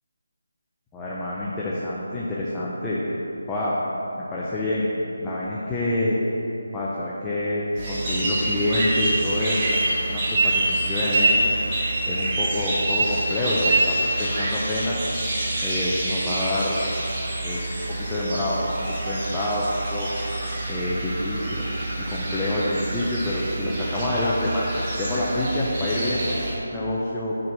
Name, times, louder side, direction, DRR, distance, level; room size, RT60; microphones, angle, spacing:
voice 1, 0.9-3.0 3.5-3.8 4.2-4.9 5.2-6.2 6.7-9.8 10.1-11.5 12.1-15.0 15.6-16.9 17.4-20.1 20.7-21.7 22.0-27.3, left 1 dB, 10° left, -8 dB, 0.5 m, -27 dB
sound 1, 7.7-26.5, right 2 dB, 20° right, 1.2 m, -26 dB
6.0 x 4.5 x 6.5 m, 2.9 s
figure-of-eight pair, 175°, 0 cm